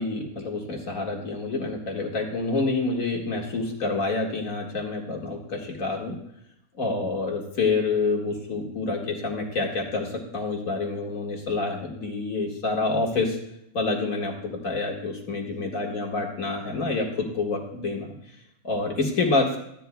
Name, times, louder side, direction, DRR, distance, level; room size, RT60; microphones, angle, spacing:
voice 1, 0.0-6.2 6.8-13.4 13.7-18.1 18.6-19.6, left 3 dB, 75° left, 0 dB, 2.3 m, -27 dB
15.5 x 10.5 x 2.3 m, 0.78 s
omnidirectional pair, 1.5 m